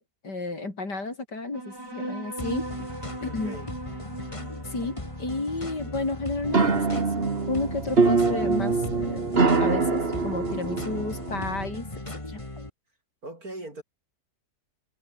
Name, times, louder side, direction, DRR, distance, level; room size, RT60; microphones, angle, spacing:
voice 1, 0.2-2.6 3.2-3.6 4.7-4.9 5.2-9.2 9.6-11.9 12.1-12.4, left 3 dB, 80° left, 5.8 m, -32 dB
sound 1, 1.5-8.5, right 2 dB, 85° right, 7.9 m, -40 dB
sound 2, 2.4-12.7, left 2 dB, 20° left, 2.8 m, -38 dB
voice 2, 3.3-3.7 13.2-13.8, right 2 dB, 60° right, 8.3 m, -40 dB
sound 3, 6.4-11.7, right 4 dB, 35° right, 2.2 m, -24 dB
omnidirectional pair, 1.8 m